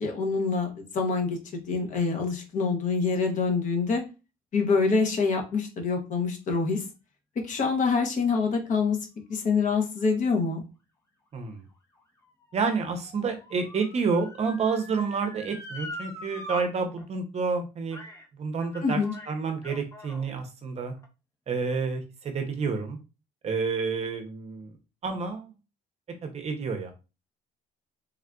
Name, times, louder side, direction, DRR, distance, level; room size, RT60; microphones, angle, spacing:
voice 1, 0.0-4.0 4.5-6.8 7.5-9.0 9.3-10.6 18.8-19.1, left 4 dB, 50° left, 3 dB, 0.9 m, -26 dB
voice 2, 11.3-11.6 12.5-18.0 18.4-19.0 19.3-20.9 21.5-23.0 23.4-24.7 25.0-25.5 26.2-26.9, right 5 dB, 40° right, 6 dB, 0.6 m, -29 dB
Motor vehicle (road) / Siren, 11.4-16.6 17.0-17.1 17.9-18.3 18.6-20.3 21.0-21.1, left 1 dB, 15° left, 0.7 m, -43 dB
3.5 x 2.4 x 2.3 m, 0.30 s
cardioid pair, 110°, 17 cm